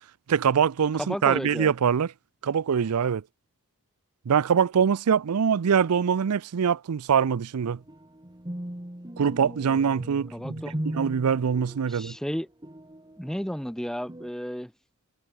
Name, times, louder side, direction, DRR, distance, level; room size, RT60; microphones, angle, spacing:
voice 1, 0.3-2.1 2.4-3.2 4.3-7.8 9.2-12.1, right 7 dB, 85° right, 0.5 m, -24 dB
voice 2, 1.0-1.7 10.3-10.7 11.9-12.5 13.2-14.7, equal, ahead, 0.8 m, -32 dB
sound 1, 7.7-13.6 14.1-14.3, right 1 dB, 20° right, 1.6 m, -38 dB
head